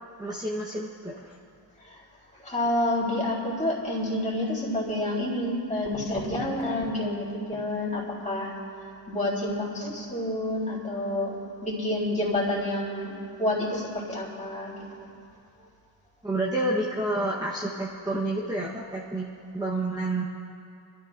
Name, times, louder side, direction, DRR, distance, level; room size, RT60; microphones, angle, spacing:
voice 1, 0.2-1.4 16.2-19.3 19.5-20.2, right 1 dB, 10° right, -4 dB, 0.9 m, -29 dB
voice 2, 2.3-8.5 9.1-13.1 13.4-14.7, left 1 dB, 15° left, -5 dB, 3.5 m, -29 dB
27.5 x 13.0 x 2.5 m, 2.5 s
wide cardioid pair, 170°, 44 cm